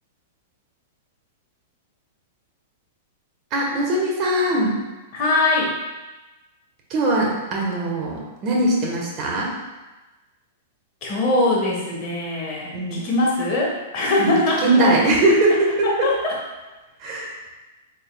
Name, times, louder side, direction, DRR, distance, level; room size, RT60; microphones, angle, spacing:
voice 1, 3.5-4.8 6.9-9.5 12.7-13.1 14.2-14.4 14.6-16.1 17.0-17.3, right 1 dB, 40° right, -2 dB, 1.1 m, -21 dB
voice 2, 5.1-5.7 11.0-14.9 16.0-16.3, left 1 dB, 40° left, -3 dB, 1.2 m, -21 dB
4.0 x 3.9 x 2.3 m, 1.1 s
hypercardioid pair, 115°, 0 cm